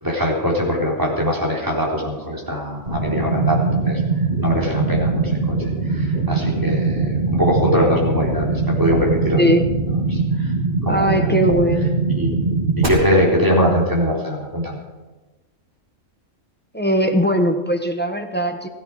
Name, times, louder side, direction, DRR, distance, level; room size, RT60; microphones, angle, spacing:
voice 1, 0.0-9.4 10.1-10.5 10.8-11.4 12.1-12.3 12.9-14.8, equal, 15° right, -3 dB, 3.9 m, -22 dB
sound 1, 2.9-12.9, right 4 dB, 45° right, 3.2 m, -21 dB
voice 2, 9.4-9.7 10.9-12.0 16.7-18.7, equal, 10° left, 5 dB, 1.0 m, -19 dB
16.0 x 15.5 x 4.8 m, 1.2 s
omnidirectional pair, 1.3 m